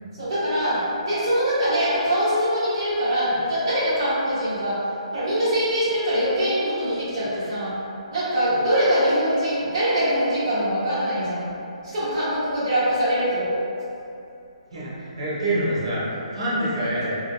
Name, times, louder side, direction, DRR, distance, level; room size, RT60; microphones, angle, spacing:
voice 1, 0.2-4.9 5.1-7.7 8.1-11.5 11.9-13.5 16.8-16.9, equal, 35° right, -12 dB, 1.3 m, -23 dB
voice 2, 14.7-17.2, right 1 dB, 55° right, -8 dB, 0.9 m, -26 dB
3.5 x 2.2 x 2.6 m, 2.7 s
hypercardioid pair, 175°, 4 cm